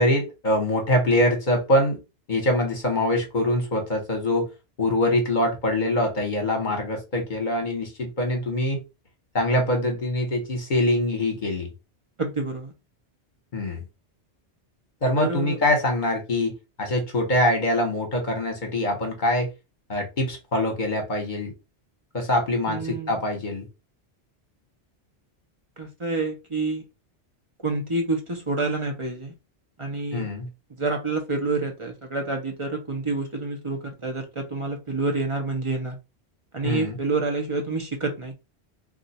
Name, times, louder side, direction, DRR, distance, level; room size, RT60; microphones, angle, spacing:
voice 1, 0.0-2.0 2.3-4.5 4.8-8.8 9.3-11.7 13.5-13.8 15.0-19.5 19.9-21.5 22.1-23.7 30.1-30.5 36.6-37.0, left 1 dB, 45° left, 1.0 m, -24 dB
voice 2, 12.2-12.7 15.2-15.6 22.7-23.1 25.8-26.8 27.6-29.3 29.8-30.3 30.8-35.9 36.5-38.3, right 3 dB, 35° right, 0.6 m, -28 dB
2.5 x 2.3 x 4.0 m
omnidirectional pair, 1.2 m